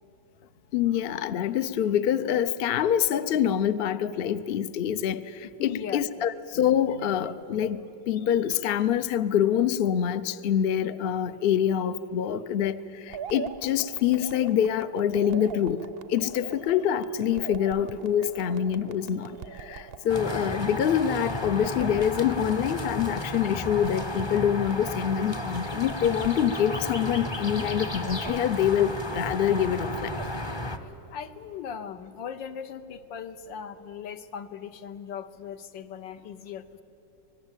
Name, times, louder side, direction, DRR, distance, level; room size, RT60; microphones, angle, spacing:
voice 1, 0.7-5.2 5.6-7.8 8.1-12.8 13.1-15.8 16.1-19.3 19.7-30.1, left 9 dB, 65° left, 12 dB, 0.5 m, -25 dB
voice 2, 5.6-6.2 31.1-36.8, left 7 dB, 80° left, 10 dB, 1.7 m, -38 dB
sound 1, 13.1-30.3, right 7 dB, 60° right, 0.6 m, -44 dB
sound 2, 20.1-30.8, left 1 dB, 25° left, 0.6 m, -33 dB
25.5 x 19.5 x 9.0 m, 2.8 s
omnidirectional pair, 2.0 m